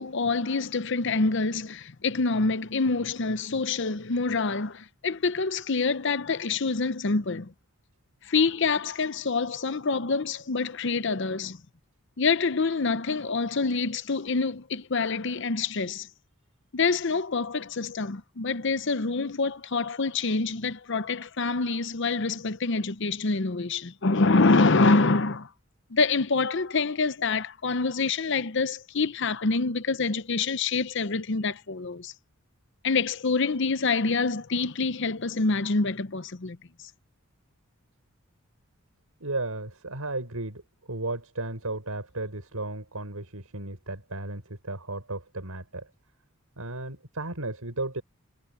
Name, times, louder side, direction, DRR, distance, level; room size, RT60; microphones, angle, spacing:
voice 1, 0.0-7.5 8.2-11.6 12.2-16.1 16.7-25.5 25.9-32.1 32.8-36.6, left 4 dB, 55° left, 0.8 m, -26 dB
voice 2, 39.2-40.6 40.9-45.9 46.6-48.0, right 2 dB, 85° right, 5.5 m, -34 dB
head